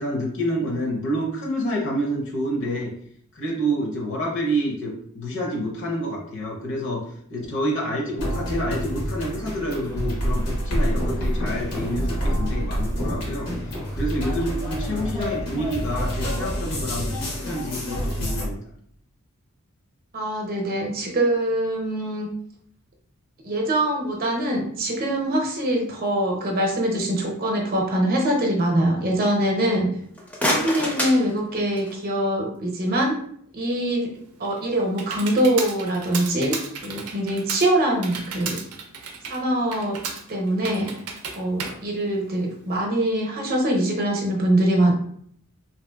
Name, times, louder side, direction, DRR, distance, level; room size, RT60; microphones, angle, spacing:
voice 1, 0.0-2.9 3.3-13.5 13.9-18.6, equal, 55° left, -2 dB, 0.7 m, -28 dB
sound 1, 8.2-18.4, equal, 85° left, 1.0 m, -27 dB
voice 2, 20.1-22.3 23.4-29.9 30.5-33.2 33.5-34.1 34.4-38.6 39.3-40.0 40.3-41.0 41.3-44.9, right 1 dB, 40° right, 0 dB, 0.7 m, -23 dB
sound 2, 30.0-32.1, equal, 5° left, 0.5 m, -27 dB
Computer keyboard, 34.2-42.7, right 5 dB, 80° right, 0.5 m, -35 dB
3.1 x 2.8 x 2.2 m, 0.64 s
head